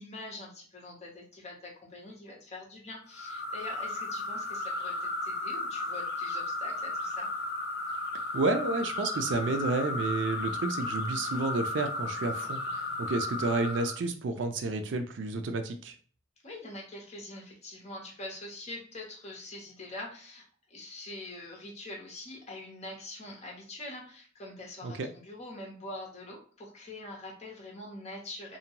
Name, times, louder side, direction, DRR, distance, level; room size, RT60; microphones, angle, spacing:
voice 1, 0.0-7.3 16.4-28.6, left 2 dB, 35° left, -1 dB, 0.8 m, -44 dB
sound 1, 3.1-14.0, left 2 dB, 55° left, 0.3 m, -34 dB
voice 2, 8.3-15.9 24.8-25.1, right 3 dB, 75° right, 7 dB, 0.4 m, -31 dB
2.6 x 2.2 x 2.8 m, 0.42 s
head